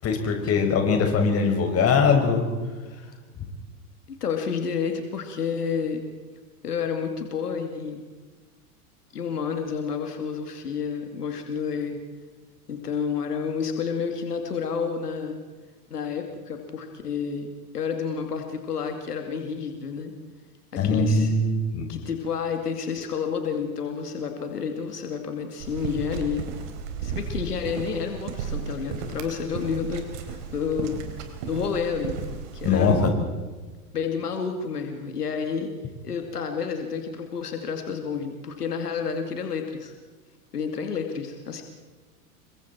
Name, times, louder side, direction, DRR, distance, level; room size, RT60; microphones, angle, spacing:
voice 1, 0.0-2.5 20.8-21.9 32.6-33.1, left 4 dB, 30° left, 3 dB, 5.4 m, -21 dB
voice 2, 4.2-6.0 6.6-8.1 9.1-12.0 12.7-15.4 15.9-17.5 17.7-20.1 20.7-21.3 21.9-26.5 27.0-31.1 31.5-32.2 32.5-33.1 33.9-35.7 36.0-39.9 40.5-41.6, left 6 dB, 80° left, 5 dB, 2.6 m, -30 dB
sound 1, 25.6-33.0, right 6 dB, 55° right, 3.9 m, -34 dB
28.5 x 23.5 x 4.5 m, 1.3 s
figure-of-eight pair, 95°, 46 cm